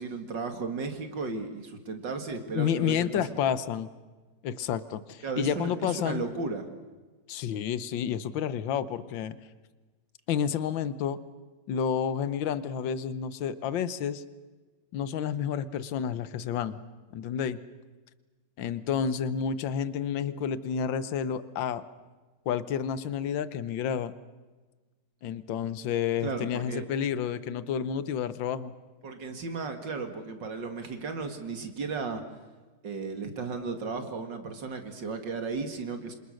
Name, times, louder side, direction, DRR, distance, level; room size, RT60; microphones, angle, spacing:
voice 1, 0.0-3.2 5.2-6.7 26.2-26.8 29.0-32.2 32.8-36.2, right 4 dB, 65° right, 6 dB, 2.7 m, -35 dB
voice 2, 2.5-3.9 4.4-6.2 7.3-9.4 10.3-11.2 11.7-14.2 14.9-16.8 17.1-17.6 18.6-21.8 22.4-24.1 25.2-28.7, left 8 dB, 75° left, 15 dB, 1.7 m, -30 dB
27.0 x 27.0 x 6.5 m, 1.3 s
omnidirectional pair, 2.1 m